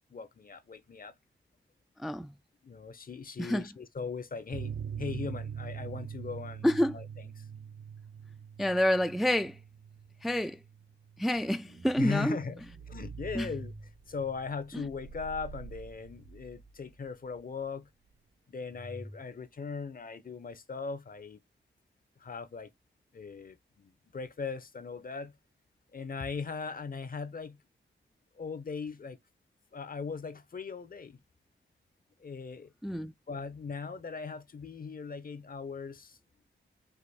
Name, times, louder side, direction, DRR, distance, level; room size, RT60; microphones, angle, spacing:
voice 1, 0.1-1.1 2.6-4.7 5.0-7.4 12.0-12.5 12.9-13.7 14.1-17.9 18.5-21.4 22.2-22.7 23.1-25.3 25.9-27.6 28.4-29.2 29.7-31.2 32.2-32.7 33.3-36.2, left 5 dB, 45° left, 0.7 m, -39 dB
voice 2, 2.0-2.3 3.4-3.6 6.6-6.9 8.6-9.6 10.2-10.6 11.2-12.4 13.3-13.5 14.7-14.8 32.8-33.1, equal, ahead, 0.3 m, -28 dB
sound 1, 4.5-11.6 11.9-12.0 12.3-12.4, right 7 dB, 65° right, 0.5 m, -43 dB
sound 2, 11.3-17.0 17.4-17.5, right 4 dB, 90° right, 2.7 m, -47 dB
4.9 x 2.5 x 4.2 m
cardioid pair, 75°, 20 cm